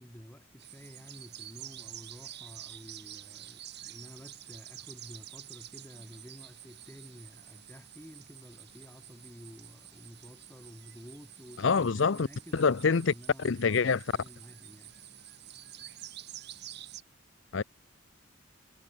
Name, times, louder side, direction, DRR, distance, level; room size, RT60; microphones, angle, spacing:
voice 1, 0.0-15.3, equal, 10° left, 5.0 m, -51 dB
sound 1, 0.6-17.0, right 12 dB, 55° right, 2.6 m, -49 dB
voice 2, 11.6-12.3 12.5-13.1 13.4-14.0 17.5-17.6, left 5 dB, 70° left, 0.6 m, -25 dB
head